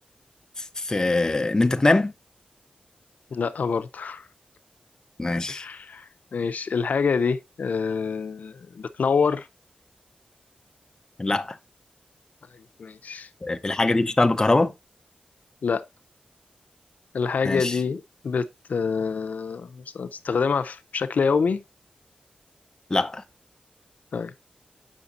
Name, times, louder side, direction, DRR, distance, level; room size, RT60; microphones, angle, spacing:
voice 1, 0.8-2.1 5.2-5.6 11.2-11.6 13.4-14.7 17.4-17.7 22.9-23.2, left 2 dB, 25° left, 0.7 m, -22 dB
voice 2, 3.3-4.2 5.5-6.0 6.3-9.5 12.8-13.3 15.6-15.9 17.1-21.6 24.1-24.3, left 5 dB, 75° left, 0.6 m, -26 dB
8.5 x 5.9 x 2.5 m
wide cardioid pair, 135°, 3 cm